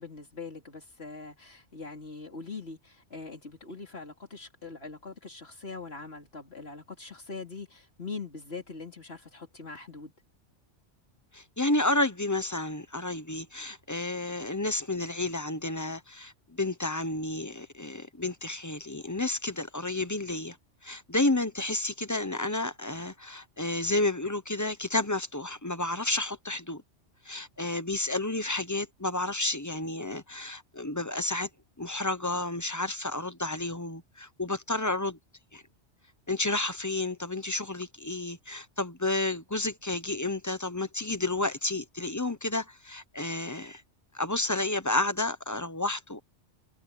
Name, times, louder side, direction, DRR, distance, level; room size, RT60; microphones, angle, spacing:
voice 1, 0.0-10.1, left 4 dB, 55° left, 3.9 m, -42 dB
voice 2, 11.3-20.6 20.8-26.8 27.2-31.5 31.8-35.2 35.5-35.6 36.3-43.8 44.1-46.2, left 2 dB, 15° left, 0.9 m, -31 dB
omnidirectional pair, 1.2 m